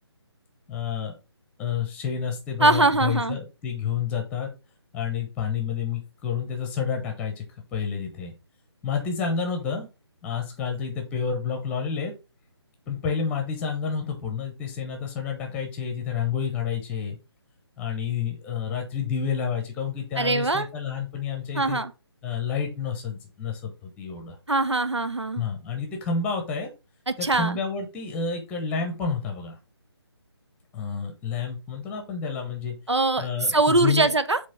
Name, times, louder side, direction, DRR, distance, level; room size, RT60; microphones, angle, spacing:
voice 1, 0.7-1.1 1.6-4.5 4.9-7.4 7.7-8.3 8.8-9.9 10.2-12.1 12.9-17.2 17.8-21.8 22.2-24.4 25.4-26.7 27.2-29.6 30.7-32.7 33.2-34.1, left 6 dB, 10° left, 0.9 m, -29 dB
voice 2, 2.6-3.4 20.2-20.7 21.5-21.9 24.5-25.4 27.1-27.6 32.9-34.4, right 2 dB, 85° right, 0.8 m, -22 dB
7.5 x 3.1 x 4.3 m
figure-of-eight pair, 150°, 14 cm